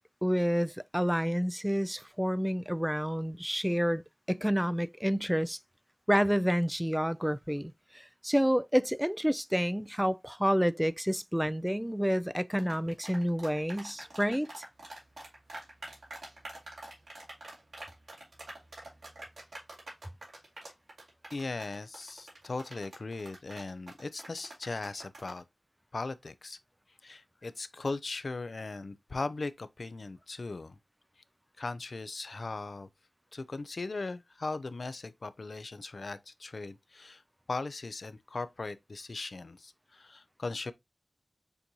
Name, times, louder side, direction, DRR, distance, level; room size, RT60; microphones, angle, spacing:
voice 1, 0.2-4.0 4.3-5.6 6.1-14.7, equal, 5° right, 0.3 m, -29 dB
sound 1, 12.6-25.4, right 2 dB, 85° right, 2.5 m, -46 dB
voice 2, 21.3-25.4 25.9-26.6 27.0-30.8 31.6-32.9 33.3-37.2 37.5-40.7, left 3 dB, 65° left, 0.4 m, -38 dB
6.9 x 2.6 x 2.9 m
wide cardioid pair, 50°, 0 cm